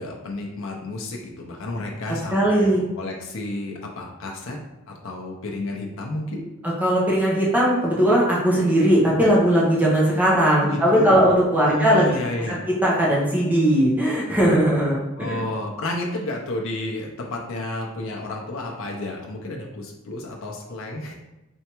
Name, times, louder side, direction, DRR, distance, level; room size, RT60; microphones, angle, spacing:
voice 1, 0.0-4.6 4.9-6.5 10.7-11.2 11.6-12.6 15.2-21.1, left 1 dB, 70° left, 0 dB, 0.6 m, -31 dB
voice 2, 2.3-2.8 6.6-12.1 12.5-12.6 12.8-15.4, equal, 10° right, -6 dB, 0.9 m, -19 dB
4.4 x 3.3 x 3.0 m, 0.98 s
head